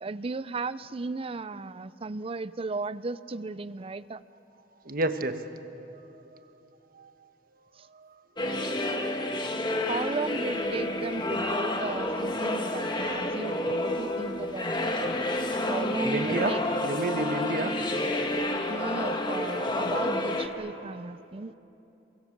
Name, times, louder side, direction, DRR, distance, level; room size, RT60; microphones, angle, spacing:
voice 1, 0.0-4.2 7.8-7.9 8.4-9.2 9.9-15.2 15.6-16.6 18.7-21.5, right 3 dB, 35° right, 16 dB, 0.5 m, -36 dB
voice 2, 4.8-5.5 6.3-6.4 6.9-7.1 7.9-8.1 16.0-17.9 18.3-18.7, right 2 dB, 55° right, 9 dB, 1.3 m, -31 dB
sound 1, 8.4-20.5, left 1 dB, 25° left, 1.6 m, -29 dB
28.0 x 24.0 x 7.4 m, 3.0 s
head